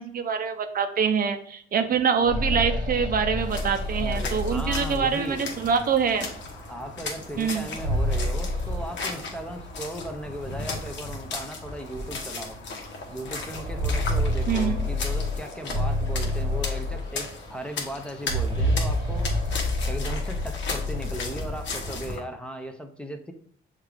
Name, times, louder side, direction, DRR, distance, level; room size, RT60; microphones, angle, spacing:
voice 1, 0.0-6.3 7.4-7.7 14.5-14.8, right 6 dB, 50° right, 8 dB, 0.5 m, -25 dB
sound 1, 1.9-5.7 7.5-9.7 10.0-10.1 11.0-11.1 11.6-11.7 13.3-17.5 18.2-21.5, left 1 dB, 20° right, 1.1 m, -28 dB
sound 2, 3.4-22.2, left 3 dB, 65° left, 0.9 m, -36 dB
voice 2, 4.0-5.5 6.7-12.6 13.1-19.3 19.8-23.3, equal, 5° left, 6 dB, 0.6 m, -37 dB
6.3 x 2.4 x 3.3 m, 0.64 s
cardioid pair, 90°, 20 cm